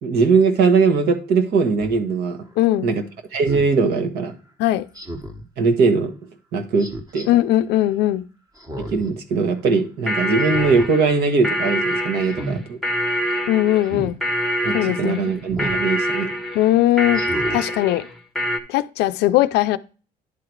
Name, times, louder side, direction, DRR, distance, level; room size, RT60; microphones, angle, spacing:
voice 1, 0.0-2.4 2.8-3.0 3.3-4.3 5.6-6.1 6.5-6.9 7.1-7.3 8.8-12.8 14.6-16.3, right 4 dB, 70° right, 1.4 m, -20 dB
Speech synthesizer, 1.8-2.0 3.4-3.7 4.9-5.4 6.8-7.3 8.6-9.1 9.5-9.6 10.4-10.9 11.3-11.6 12.2-12.6 13.8-14.1 15.5-15.8 16.3-16.4 17.1-17.6 18.1-18.2, right 1 dB, 20° right, 1.3 m, -32 dB
voice 2, 2.6-2.9 4.6-4.9 7.3-8.2 13.5-14.2 14.7-15.2 16.5-18.1 18.7-19.8, left 14 dB, 85° left, 0.4 m, -19 dB
sound 1, 10.1-18.6, equal, ahead, 0.9 m, -25 dB
10.5 x 3.9 x 4.6 m
cardioid pair, 110°, 17 cm